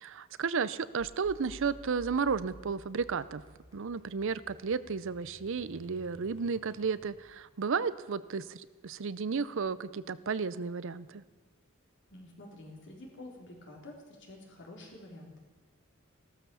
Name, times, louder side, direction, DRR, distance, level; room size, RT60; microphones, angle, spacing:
voice 1, 0.0-3.4 3.7-11.2, right 5 dB, 60° right, 16 dB, 0.5 m, -33 dB
sound 1, 1.0-7.3, equal, 25° left, 2.4 m, -54 dB
voice 2, 12.1-15.4, left 1 dB, 55° left, -1 dB, 3.8 m, -49 dB
16.0 x 13.0 x 7.0 m, 1.3 s
head